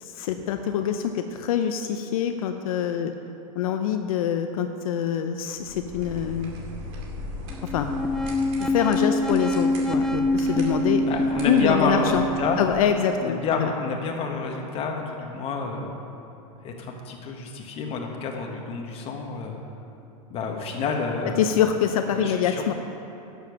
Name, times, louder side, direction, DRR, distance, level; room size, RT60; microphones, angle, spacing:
voice 1, 0.0-3.1 3.6-6.5 7.7-7.9 8.6-11.1 11.4-12.3 12.6-13.7 21.4-22.7, left 8 dB, 80° left, 6 dB, 0.7 m, -25 dB
sound 1, 5.6-12.9, left 1 dB, 55° right, 2.4 m, -39 dB
sound 2, 7.5-12.7, left 1 dB, 5° left, 0.3 m, -25 dB
voice 2, 11.1-12.6 13.2-15.9 16.6-19.6 20.3-21.4 22.1-22.7, left 4 dB, 30° left, 1 dB, 1.6 m, -29 dB
11.5 x 7.2 x 6.3 m, 2.9 s
supercardioid pair, 135°, 18 cm